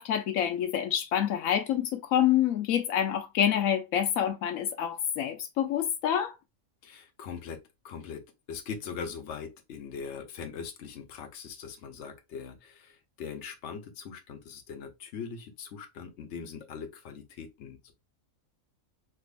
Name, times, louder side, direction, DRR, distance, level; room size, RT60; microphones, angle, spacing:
voice 1, 0.0-6.4, left 10 dB, 90° left, 1.0 m, -27 dB
voice 2, 6.8-17.9, left 6 dB, 60° left, 1.0 m, -41 dB
3.5 x 3.0 x 2.4 m
omnidirectional pair, 1.4 m